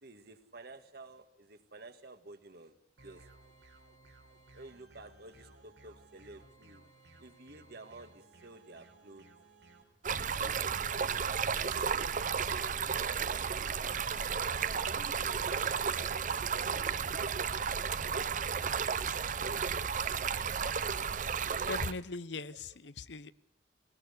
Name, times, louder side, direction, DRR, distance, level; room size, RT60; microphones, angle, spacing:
voice 1, 0.0-2.8 3.0-3.2 4.5-6.9 7.2-9.3 10.1-14.4 15.2-18.7 19.4-20.7 22.3-22.4 23.1-23.2, right 2 dB, 65° right, 8 dB, 1.8 m, -53 dB
sound 1, 3.0-9.8, right 2 dB, 85° right, 4.2 m, -59 dB
Stream, 10.0-21.9, right 6 dB, 45° right, 0.7 m, -33 dB
voice 2, 21.7-23.3, left 3 dB, 80° left, 16 dB, 0.8 m, -39 dB
19.5 x 19.0 x 8.2 m, 0.79 s
head